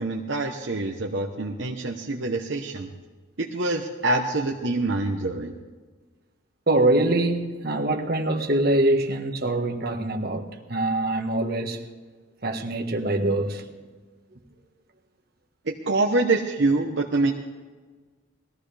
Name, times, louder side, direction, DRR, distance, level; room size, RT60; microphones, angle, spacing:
voice 1, 0.0-2.9 3.4-5.5 15.7-17.3, right 2 dB, 65° right, 1.0 m, -25 dB
voice 2, 6.7-11.8 12.4-13.6, right 2 dB, 50° right, 1.5 m, -24 dB
21.0 x 15.0 x 3.4 m
head